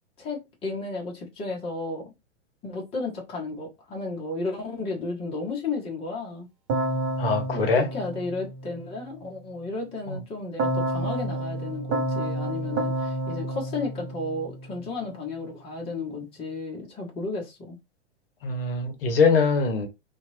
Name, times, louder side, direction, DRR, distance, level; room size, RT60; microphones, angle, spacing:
voice 1, 0.2-2.1 2.6-6.5 7.5-7.7 7.9-17.8, left 3 dB, 15° left, 0.7 m, -33 dB
Keyboard (musical), 6.7-9.0 10.6-14.9, right 1 dB, 30° right, 0.8 m, -30 dB
voice 2, 7.2-7.9 10.1-10.2 18.4-19.9, left 4 dB, 55° left, 0.8 m, -22 dB
2.8 x 2.2 x 2.6 m
figure-of-eight pair, 105°, 35 cm